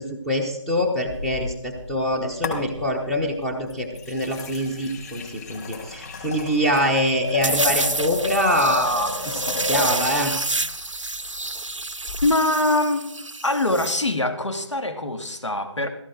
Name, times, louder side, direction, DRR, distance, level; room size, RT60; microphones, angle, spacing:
voice 1, 0.0-10.3, equal, ahead, 0 dB, 0.8 m, -24 dB
sound 1, 1.1-2.0 2.4-3.1 3.7-10.2 12.1-12.2, left 3 dB, 35° left, 3.8 m, -32 dB
sound 2, 7.4-14.0, right 2 dB, 85° right, 0.8 m, -28 dB
voice 2, 12.2-13.1 13.4-15.9, left 2 dB, 70° left, 7 dB, 2.4 m, -23 dB
16.5 x 15.0 x 3.8 m, 0.76 s
figure-of-eight pair, 155°, 16 cm